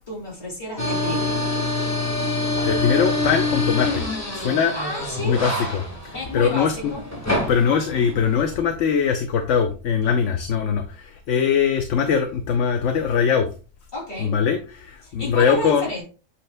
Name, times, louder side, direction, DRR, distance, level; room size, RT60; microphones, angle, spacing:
voice 1, 0.0-1.5 4.7-5.4 6.1-7.0 13.9-14.4 15.0-16.0, left 1 dB, 35° left, 3.0 m, -31 dB
sound 1, 0.8-8.5, left 2 dB, 10° left, 1.3 m, -26 dB
voice 2, 2.3-4.7 5.2-6.7 7.5-13.5 14.2-15.9, left 7 dB, 65° left, 1.0 m, -22 dB
8.1 x 5.7 x 2.2 m
omnidirectional pair, 1.4 m